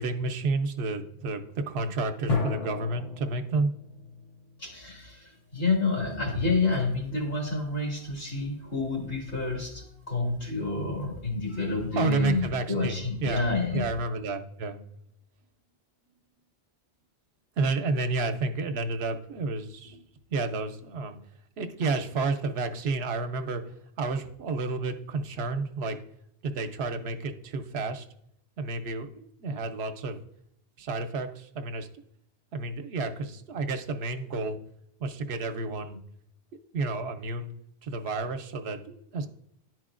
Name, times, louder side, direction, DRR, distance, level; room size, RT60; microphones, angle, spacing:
voice 1, 0.0-3.7 12.0-14.8 17.6-21.2 21.6-23.6 24.0-26.0 26.4-28.0 28.6-30.2 30.8-31.9 32.5-34.6 35.0-36.0 36.7-37.5 37.8-39.3, right 3 dB, 75° right, 7 dB, 0.9 m, -31 dB
sound 1, 2.3-5.7, left 4 dB, 40° left, 0.7 m, -34 dB
voice 2, 4.6-13.9, left 3 dB, 65° left, -2 dB, 2.2 m, -29 dB
11.0 x 4.5 x 2.4 m, 0.74 s
omnidirectional pair, 1.1 m